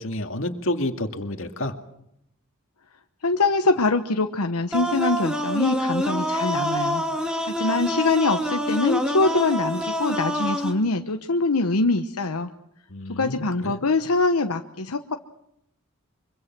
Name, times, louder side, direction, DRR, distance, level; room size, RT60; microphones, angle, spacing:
voice 1, 0.0-1.7 12.9-13.8, left 1 dB, 60° left, 5 dB, 2.3 m, -29 dB
voice 2, 3.2-12.5 13.1-15.2, left 3 dB, 85° left, 6 dB, 1.1 m, -24 dB
sound 1, 4.7-10.7, equal, 5° right, 2.2 m, -26 dB
24.5 x 24.5 x 6.1 m, 0.79 s
head